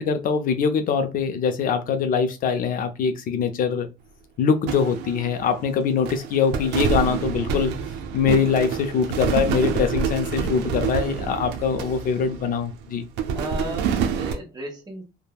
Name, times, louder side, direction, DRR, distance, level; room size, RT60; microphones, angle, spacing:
voice 1, 0.0-3.9 4.4-7.7 8.1-13.0, left 6 dB, 55° left, 0.5 m, -23 dB
sound 1, 4.7-5.8 6.1-12.7 13.2-14.3, right 6 dB, 90° right, 0.5 m, -27 dB
voice 2, 13.3-15.0, right 1 dB, 25° right, 1.1 m, -35 dB
3.3 x 2.1 x 2.3 m
cardioid pair, 110°, 17 cm